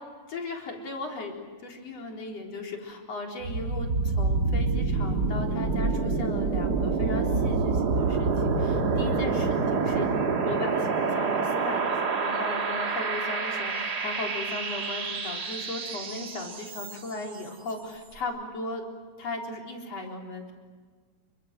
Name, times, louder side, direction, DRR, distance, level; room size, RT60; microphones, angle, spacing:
voice 1, 0.3-10.1 10.4-18.8 19.2-20.5, left 2 dB, 45° left, 2 dB, 4.9 m, -37 dB
sound 1, 3.4-17.2, right 4 dB, 40° right, 1.6 m, -27 dB
29.0 x 24.0 x 7.7 m, 1.5 s
omnidirectional pair, 4.1 m